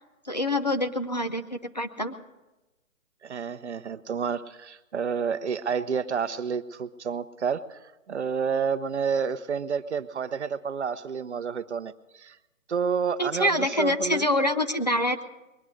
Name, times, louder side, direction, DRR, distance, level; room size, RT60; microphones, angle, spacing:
voice 1, 0.2-2.1 13.2-15.2, left 1 dB, 30° left, 8 dB, 0.5 m, -26 dB
voice 2, 3.2-7.8 8.1-12.4 12.7-14.3, right 6 dB, 55° right, 12 dB, 0.7 m, -29 dB
21.5 x 9.6 x 6.3 m, 1.0 s
hypercardioid pair, 170°, 41 cm